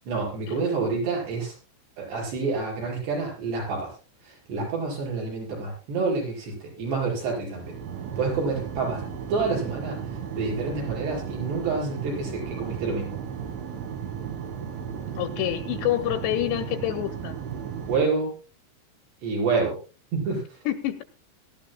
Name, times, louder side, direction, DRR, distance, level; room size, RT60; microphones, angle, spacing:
voice 1, 0.1-1.5 2.0-3.9 4.2-7.7 8.2-9.0 9.3-10.0 10.3-13.2 17.9-18.3 19.2-19.8 20.1-20.6, right 4 dB, 60° right, -2 dB, 7.7 m, -28 dB
sound 1, 7.5-18.0, right 7 dB, 80° right, 4.2 m, -35 dB
voice 2, 15.2-17.4 20.7-21.0, left 13 dB, 80° left, 7 dB, 2.7 m, -27 dB
22.0 x 13.5 x 2.3 m, 0.32 s
omnidirectional pair, 5.5 m